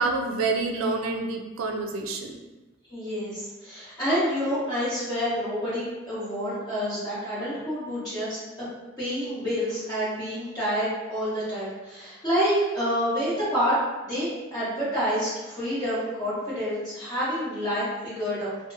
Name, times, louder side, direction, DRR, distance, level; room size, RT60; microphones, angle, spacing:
voice 1, 0.0-2.4, right 3 dB, 85° right, 3 dB, 0.4 m, -27 dB
voice 2, 2.9-8.7 9.0-18.6, equal, 20° left, -12 dB, 1.1 m, -28 dB
2.7 x 2.1 x 2.5 m, 1.2 s
head